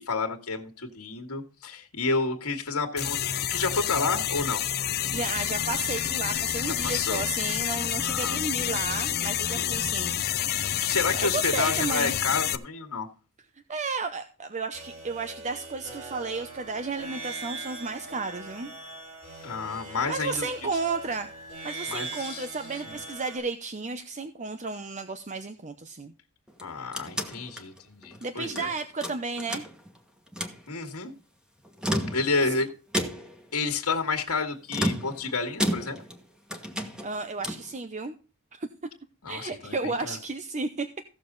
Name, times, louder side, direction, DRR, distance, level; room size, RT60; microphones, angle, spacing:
voice 1, 0.0-4.6 6.8-7.2 8.0-8.4 9.6-9.7 10.8-13.1 19.4-20.4 21.9-22.5 26.6-28.7 30.7-31.1 32.1-32.7 33.5-36.0 39.2-40.2, left 4 dB, 70° left, 1.9 m, -30 dB
sound 1, 3.0-12.6, left 10 dB, 45° left, 0.7 m, -28 dB
voice 2, 5.1-10.1 11.2-12.2 13.7-18.7 20.1-21.3 21.6-26.1 28.2-29.7 32.4-32.6 37.0-38.1 38.5-38.7 39.3-40.9, right 3 dB, 30° right, 0.8 m, -33 dB
sound 2, 14.7-23.4, right 3 dB, 65° right, 6.9 m, -41 dB
sound 3, 26.5-28.7 29.0-30.0 30.3-30.6 31.6-32.5 32.9-33.5 34.7-36.2 36.5-37.7, equal, 5° right, 1.4 m, -32 dB
16.0 x 6.9 x 4.0 m
head